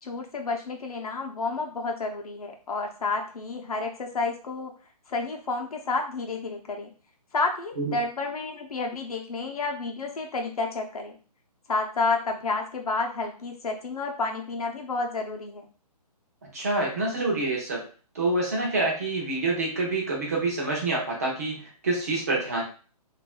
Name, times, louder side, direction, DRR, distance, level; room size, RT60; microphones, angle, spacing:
voice 1, 0.0-4.7 5.1-6.9 7.3-11.2 11.7-15.7, left 3 dB, 65° left, 2 dB, 0.8 m, -30 dB
voice 2, 16.5-17.8 18.1-22.6, right 2 dB, 25° right, -2 dB, 0.7 m, -27 dB
3.9 x 2.6 x 2.3 m, 0.38 s
hypercardioid pair, 180°, 20 cm